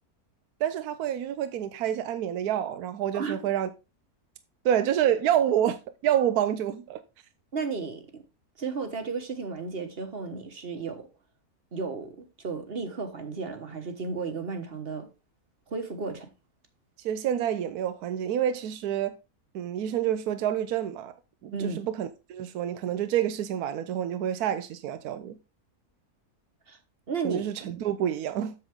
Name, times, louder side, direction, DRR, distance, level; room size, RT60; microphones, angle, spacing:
voice 1, 0.6-3.7 4.6-5.8 6.0-7.0 17.0-19.1 19.5-21.1 21.4-25.4 27.2-28.5, right 10 dB, 80° right, 1.2 m, -28 dB
voice 2, 7.5-8.2 8.6-11.1 11.7-15.1 15.7-16.3 21.5-21.8 26.7-26.8 27.1-27.5, right 4 dB, 40° right, 1.3 m, -34 dB
7.9 x 7.1 x 3.6 m
omnidirectional pair, 1.6 m